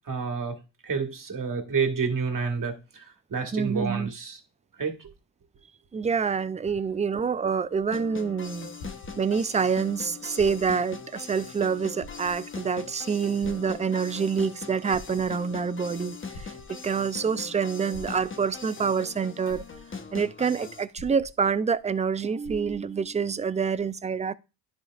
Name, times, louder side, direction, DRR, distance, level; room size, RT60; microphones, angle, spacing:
voice 1, 0.1-0.5 0.8-3.0 3.3-4.4 4.8-5.1, right 5 dB, 45° right, 1.7 m, -29 dB
voice 2, 3.5-4.1 5.9-8.7 9.2-19.6 20.1-24.3, right 6 dB, 15° right, 0.4 m, -27 dB
sound 1, 7.6-9.7 10.3-10.9 11.4-11.5 11.9-12.7 13.4-14.2 14.7-15.6 16.3-17.1 17.9-18.6 19.1-19.2 19.5-20.2 20.9-21.8 22.0-22.1 22.4-23.1 23.8-23.9, left 2 dB, 75° left, 1.3 m, -45 dB
sound 2, 7.9-20.8, left 5 dB, 25° left, 1.0 m, -41 dB
10.5 x 5.2 x 2.4 m
supercardioid pair, 60°, 46 cm